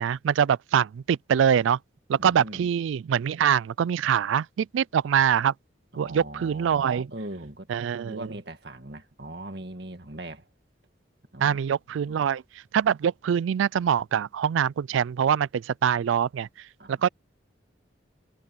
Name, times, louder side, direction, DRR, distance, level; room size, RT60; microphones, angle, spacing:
voice 1, 0.0-1.8 2.1-5.5 6.0-7.1 7.7-8.3 11.4-12.4 12.7-16.5 16.9-17.1, right 8 dB, 80° right, 0.3 m, -24 dB
voice 2, 2.2-2.7 5.9-7.7 8.0-10.5 11.3-11.6 12.1-12.3 16.8-17.0, right 1 dB, 55° right, 2.2 m, -40 dB
head